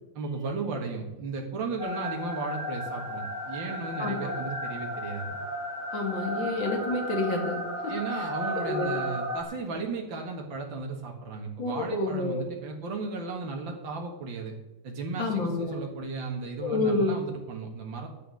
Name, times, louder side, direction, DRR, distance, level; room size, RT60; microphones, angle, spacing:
voice 1, 0.2-5.4 7.9-14.6 14.8-18.1, right 3 dB, 80° right, 1 dB, 2.4 m, -35 dB
sound 1, 1.8-9.4, equal, 45° right, 3.1 m, -34 dB
voice 2, 4.0-4.3 5.9-7.9 8.6-8.9 11.6-12.4 15.2-15.8 16.6-17.2, left 2 dB, 85° left, 2 dB, 3.1 m, -29 dB
9.9 x 9.0 x 7.7 m, 1.1 s
omnidirectional pair, 2.0 m